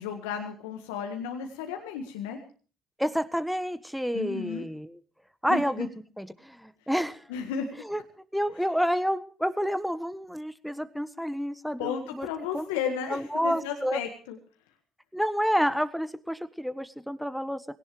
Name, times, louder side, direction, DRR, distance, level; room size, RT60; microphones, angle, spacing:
voice 1, 0.0-2.4 4.1-4.7 5.5-5.9 7.3-7.7 11.8-14.4, left 7 dB, 80° left, 4 dB, 1.7 m, -33 dB
voice 2, 3.0-5.0 5.4-5.9 6.2-7.2 7.9-8.0 8.3-12.3 12.5-12.6 13.1-14.0 15.1-17.6, equal, ahead, 13 dB, 1.4 m, -29 dB
20.0 x 17.5 x 3.3 m, 0.40 s
hypercardioid pair, 60°, 0 cm